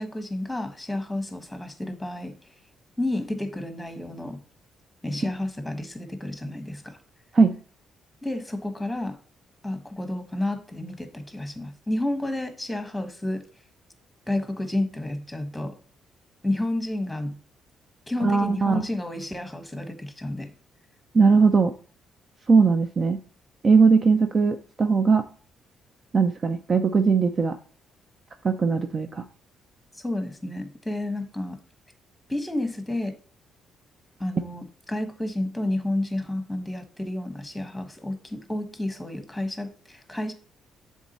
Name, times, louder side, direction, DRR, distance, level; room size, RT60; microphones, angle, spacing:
voice 1, 0.0-2.3 3.0-4.4 5.0-7.0 8.2-9.2 9.6-13.4 14.3-15.8 16.4-17.4 18.1-20.5 29.9-31.6 32.3-33.1 34.2-40.3, left 1 dB, 5° left, 8 dB, 1.2 m, -30 dB
voice 2, 18.2-18.8 21.1-21.7 22.5-23.2 23.6-25.2 26.1-27.5 28.4-29.2, right 4 dB, 40° right, 7 dB, 0.6 m, -19 dB
7.2 x 3.7 x 4.1 m, 0.42 s
cardioid pair, 90°, 0 cm